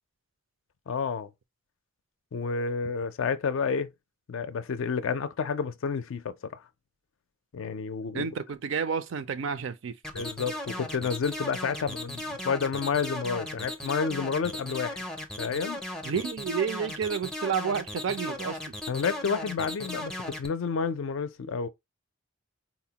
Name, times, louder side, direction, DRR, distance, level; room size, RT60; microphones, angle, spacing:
voice 1, 0.9-1.3 2.3-3.9 4.3-6.6 7.5-8.3 10.1-15.0 15.4-15.8 18.9-21.7, left 5 dB, 65° left, 0.4 m, -30 dB
voice 2, 8.1-10.0 16.0-18.6, right 6 dB, 60° right, 0.4 m, -30 dB
sound 1, 10.0-20.5, left 1 dB, 5° left, 0.4 m, -36 dB
4.1 x 2.1 x 2.8 m
head